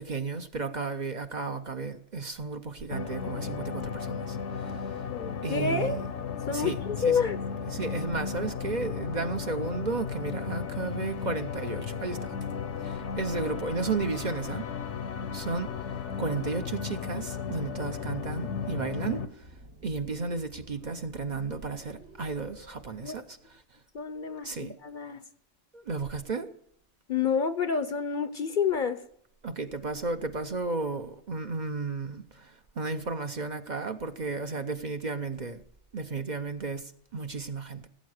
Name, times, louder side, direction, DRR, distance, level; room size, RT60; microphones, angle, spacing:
voice 1, 0.0-4.8 5.4-6.0 6.5-6.8 7.0-7.2 7.7-12.4 12.8-14.7 15.3-15.7 16.2-19.5 19.8-23.4 24.4-24.7 25.7-26.5 29.4-35.6 35.9-37.9, right 4 dB, 45° right, 0.8 m, -33 dB
sound 1, 2.9-19.3, left 6 dB, 80° left, 1.3 m, -35 dB
voice 2, 5.1-6.0 6.5-7.4 23.0-23.2 23.9-25.2 27.1-29.0, left 6 dB, 50° left, 0.8 m, -28 dB
sound 2, 19.4-23.7, right 2 dB, 70° right, 2.0 m, -52 dB
16.5 x 8.5 x 6.4 m
omnidirectional pair, 1.2 m